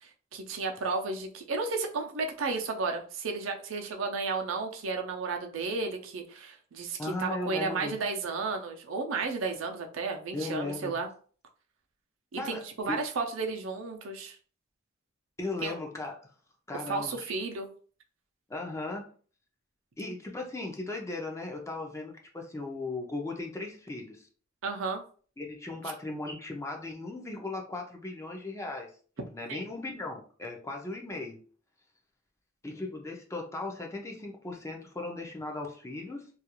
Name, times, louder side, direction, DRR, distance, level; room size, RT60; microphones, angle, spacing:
voice 1, 0.3-11.1 12.3-14.4 15.6-15.7 16.9-17.7 24.6-25.0 29.5-29.6, right 4 dB, 75° right, 3 dB, 0.5 m, -33 dB
voice 2, 7.0-8.0 10.3-11.0 12.4-13.0 15.4-16.1 16.7-17.3 18.5-19.1 20.0-24.3 25.4-28.9 29.3-31.4 32.6-36.3, left 2 dB, 15° left, 1 dB, 0.5 m, -37 dB
2.4 x 2.3 x 2.9 m, 0.42 s
head